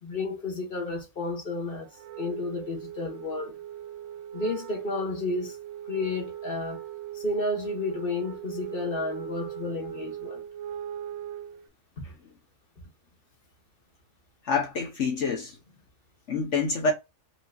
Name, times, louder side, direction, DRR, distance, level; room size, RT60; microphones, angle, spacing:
voice 1, 0.0-1.9 2.2-3.6 4.3-5.6 5.9-6.8 7.1-10.4, left 3 dB, 40° left, 1.7 m, -32 dB
Wind instrument woodwind instrument, 1.9-11.7, right 11 dB, 80° right, 1.1 m, -39 dB
voice 2, 14.4-15.6 16.3-16.9, left 4 dB, 60° left, 1.2 m, -27 dB
4.7 x 2.9 x 2.4 m
omnidirectional pair, 1.4 m